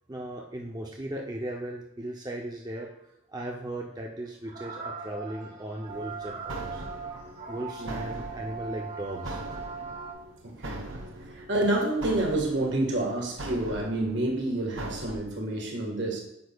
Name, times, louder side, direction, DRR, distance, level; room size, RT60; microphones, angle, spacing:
voice 1, 0.1-2.9 3.3-6.8 7.5-9.4, right 1 dB, 20° right, 0 dB, 0.6 m, -37 dB
sound 1, 2.7-2.9 3.6-3.7 4.4-10.1, right 5 dB, 45° right, 2.4 m, -40 dB
sound 2, 5.9-15.2, right 1 dB, 85° right, 0.9 m, -41 dB
voice 2, 10.4-10.9 11.3-16.2, right 1 dB, 65° right, 0 dB, 1.6 m, -28 dB
9.3 x 6.3 x 2.3 m, 0.84 s
head